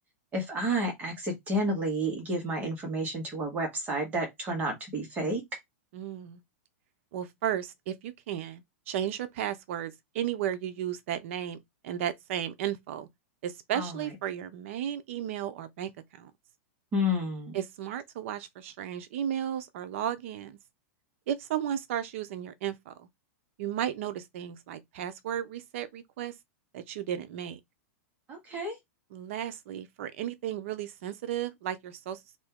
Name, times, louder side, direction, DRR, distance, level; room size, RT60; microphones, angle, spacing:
voice 1, 0.3-5.4 13.7-13.9 16.9-17.6 28.3-28.8, equal, 20° right, 1.2 m, -30 dB
voice 2, 5.9-6.4 7.1-11.6 11.8-13.1 13.4-16.3 17.5-20.6 21.3-23.1 23.6-26.3 26.7-27.6 29.1-32.2, right 10 dB, 60° right, 0.6 m, -34 dB
2.8 x 2.6 x 3.5 m
supercardioid pair, 150°, 8 cm